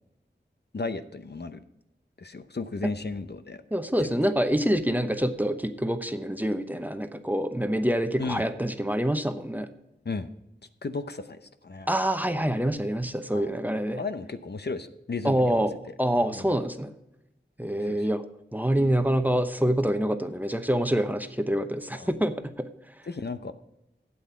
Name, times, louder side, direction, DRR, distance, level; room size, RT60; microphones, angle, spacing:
voice 1, 0.7-1.6 2.2-3.6 4.0-4.2 8.2-8.4 10.0-10.3 10.8-11.9 13.3-13.5 14.0-15.7 16.2-16.5 17.8-18.1 21.9-22.1 23.1-23.5, left 3 dB, 60° left, 10 dB, 0.8 m, -35 dB
voice 2, 3.7-9.7 11.9-14.0 15.2-15.7 16.0-16.9 17.6-18.2 18.5-22.7, equal, 10° right, 8 dB, 0.9 m, -26 dB
12.5 x 8.7 x 4.5 m, 0.87 s
wide cardioid pair, 55°, 19 cm